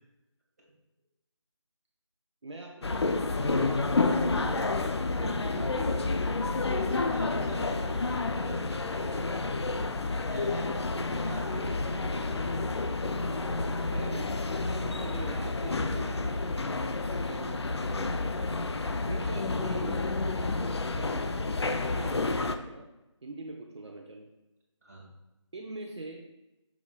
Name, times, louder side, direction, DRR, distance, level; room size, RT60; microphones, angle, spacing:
voice 1, 2.4-3.1 3.4-6.1 13.9-14.5 14.8-16.9 17.3-17.9 19.0-20.4 20.9-21.3 21.6-22.9 23.2-24.3 25.5-26.3, right 2 dB, 60° right, 0 dB, 0.8 m, -43 dB
sound 1, 2.8-22.6, left 3 dB, 55° left, 0.5 m, -30 dB
voice 2, 6.7-9.5 10.2-10.7 11.1-12.4 15.1-15.3 17.3-17.4 24.8-25.0, right 1 dB, 30° right, -3 dB, 1.4 m, -46 dB
7.0 x 6.1 x 2.2 m, 0.99 s
figure-of-eight pair, 170°, 16 cm